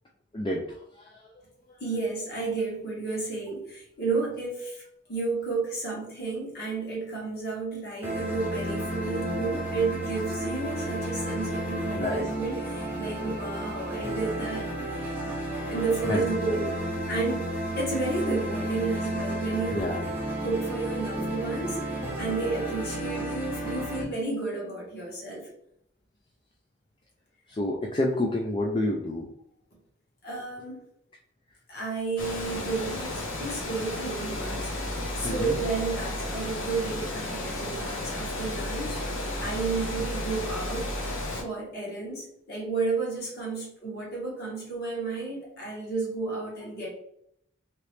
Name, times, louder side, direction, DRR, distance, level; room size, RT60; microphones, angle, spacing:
voice 1, 0.3-1.3 1.7-1.8 12.0-12.3 16.1-16.2 19.7-20.0 27.5-29.3 35.2-35.6, left 1 dB, 25° left, -1 dB, 0.3 m, -29 dB
voice 2, 1.8-4.8 5.1-14.7 15.2-15.4 15.7-16.7 17.1-19.8 20.4-25.5 30.2-30.8 31.7-34.7 35.1-40.9 41.4-46.9, right 3 dB, 50° left, -3 dB, 1.3 m, -32 dB
sound 1, 8.0-24.0, right 1 dB, 10° right, 0.6 m, -32 dB
Water, 32.2-41.4, left 1 dB, 80° left, 0.9 m, -33 dB
3.0 x 2.9 x 3.2 m, 0.72 s
head